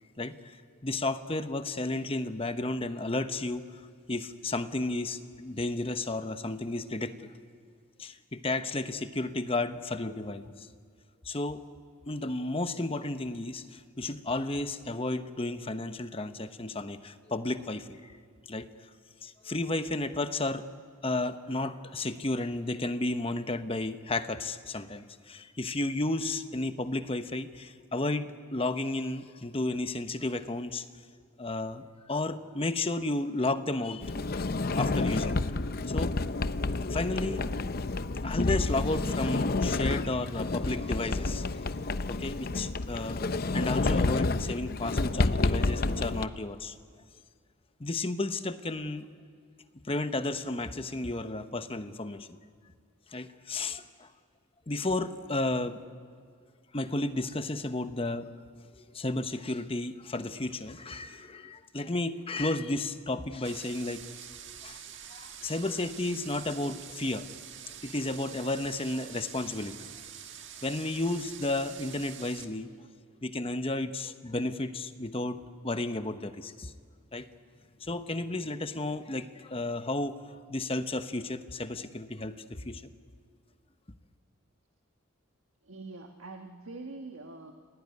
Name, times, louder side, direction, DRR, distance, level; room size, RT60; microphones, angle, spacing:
voice 1, 0.2-3.8 4.1-7.3 8.0-10.7 11.2-11.6 12.1-18.1 18.5-18.7 19.2-20.6 21.0-30.8 31.4-34.4 34.8-35.4 35.9-36.1 36.9-37.5 37.9-41.6 42.1-46.8 47.8-49.1 49.9-52.3 53.1-54.1 54.7-55.8 56.7-58.3 58.8-64.0 64.6-64.8 65.1-67.2 67.6-69.8 70.6-72.7 73.2-76.7 77.1-77.3 77.8-80.2 80.5-82.8, left 2 dB, 25° left, 10 dB, 1.0 m, -33 dB
Sliding door, 34.0-46.2, left 3 dB, 45° left, 0.7 m, -29 dB
sound 1, 63.4-72.5, right 9 dB, 60° right, 1.8 m, -46 dB
voice 2, 85.6-87.5, right 3 dB, 75° right, 4 dB, 1.5 m, -44 dB
28.5 x 17.5 x 9.7 m, 2.1 s
head